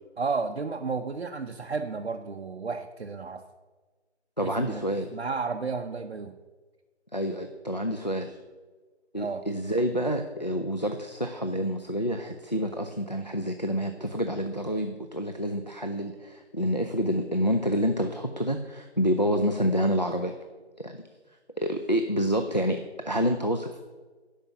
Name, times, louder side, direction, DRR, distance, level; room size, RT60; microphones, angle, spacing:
voice 1, 0.2-3.4 4.4-4.8 5.1-6.4 9.2-9.4, right 4 dB, 60° right, 4 dB, 0.6 m, -32 dB
voice 2, 4.4-5.1 7.1-8.4 9.1-20.4 20.8-21.0 21.6-23.8, equal, 40° left, 5 dB, 0.4 m, -28 dB
10.5 x 5.0 x 7.2 m, 1.3 s
figure-of-eight pair, 175°, 35 cm